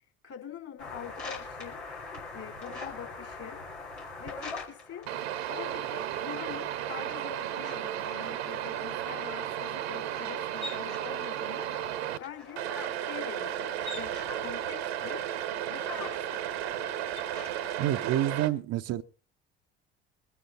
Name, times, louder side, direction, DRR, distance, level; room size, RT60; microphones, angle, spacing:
voice 1, 0.2-1.8 2.3-3.6 4.2-5.0 5.5-11.7 12.2-12.6 13.0-15.2 15.7-16.4, left 8 dB, 45° left, 4.0 m, -44 dB
sound 1, 0.8-17.8, left 3 dB, 85° left, 3.0 m, -45 dB
sound 2, 5.1-12.2 12.6-18.5, right 11 dB, 70° right, 1.2 m, -34 dB
voice 2, 17.8-19.0, right 13 dB, 50° right, 0.8 m, -28 dB
22.5 x 9.5 x 3.9 m
figure-of-eight pair, 55°, 32 cm